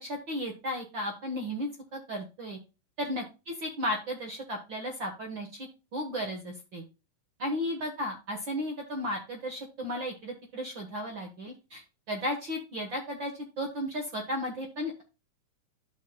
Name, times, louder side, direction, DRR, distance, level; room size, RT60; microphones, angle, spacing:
voice 1, 0.0-2.6 3.0-6.8 7.4-15.0, equal, 55° right, 3 dB, 1.3 m, -34 dB
13.0 x 6.1 x 2.2 m, 0.29 s
omnidirectional pair, 4.0 m